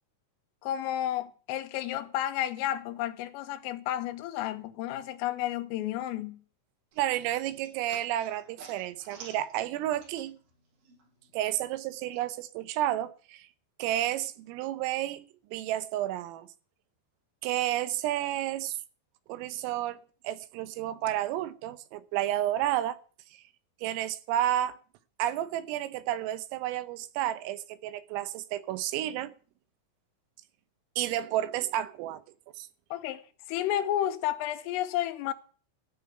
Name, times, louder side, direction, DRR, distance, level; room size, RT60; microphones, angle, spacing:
voice 1, 0.6-6.4 32.9-33.2 33.5-35.3, left 12 dB, 90° left, 3.6 m, -31 dB
sound 1, 6.9-10.6 10.8-12.2, right 5 dB, 70° right, 8.3 m, -51 dB
voice 2, 7.0-10.4 11.3-13.5 13.8-15.3 15.5-16.5 17.4-18.8 19.3-23.0 23.8-24.8 25.2-29.3 31.0-32.2 32.6-32.7, right 13 dB, 85° right, 3.6 m, -31 dB
14.5 x 6.8 x 9.3 m
omnidirectional pair, 5.8 m